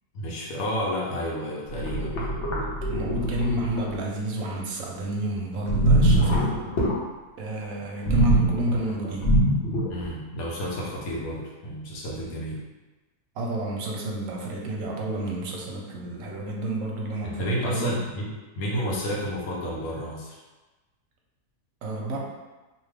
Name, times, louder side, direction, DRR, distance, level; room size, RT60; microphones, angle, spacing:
voice 1, 0.1-2.4 9.9-12.6 17.2-20.4, equal, 75° left, -3 dB, 1.1 m, -31 dB
sound 1, 1.7-3.9 5.7-7.0 8.1-10.1, right 1 dB, 55° left, 0.9 m, -23 dB
voice 2, 2.8-6.6 7.4-9.3 13.4-18.1 21.8-22.2, right 1 dB, 70° right, -1 dB, 0.9 m, -30 dB
2.8 x 2.3 x 3.2 m, 1.2 s
omnidirectional pair, 1.6 m